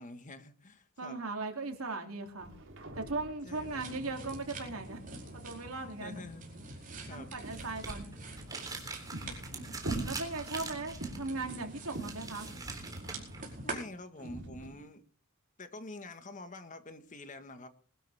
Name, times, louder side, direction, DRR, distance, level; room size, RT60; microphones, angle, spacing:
voice 1, 0.0-1.2 3.4-4.1 6.0-6.4 7.0-7.3 13.6-15.0 15.6-17.7, left 2 dB, 35° left, 9 dB, 1.6 m, -47 dB
voice 2, 1.0-2.5 3.0-5.0 5.3-6.2 7.1-8.1 10.0-12.5, right 3 dB, 80° right, 3 dB, 3.0 m, -38 dB
sound 1, 2.4-5.9 6.4-8.2 8.7-14.8, right 2 dB, 60° right, 3.8 m, -45 dB
sound 2, 3.5-13.8, right 2 dB, 40° right, 4.9 m, -46 dB
sound 3, 7.4-13.5, right 3 dB, 15° right, 3.5 m, -44 dB
21.5 x 12.5 x 3.5 m, 0.40 s
head